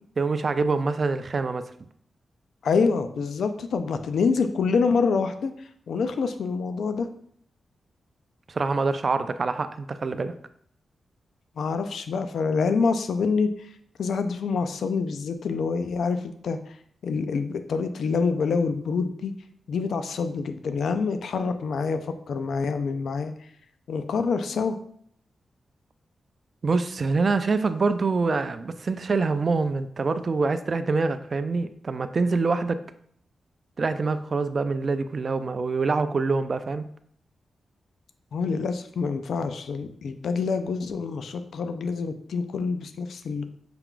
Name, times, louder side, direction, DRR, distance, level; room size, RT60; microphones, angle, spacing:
voice 1, 0.2-1.7 8.5-10.3 26.6-32.8 33.8-36.9, right 4 dB, 45° right, 11 dB, 0.3 m, -25 dB
voice 2, 2.6-5.5 5.9-7.1 11.6-13.5 14.0-16.6 17.0-19.3 19.7-23.3 23.9-24.8 38.3-43.4, left 5 dB, 80° left, 9 dB, 0.4 m, -26 dB
5.7 x 2.3 x 3.7 m, 0.64 s
cardioid pair, 90°, 0 cm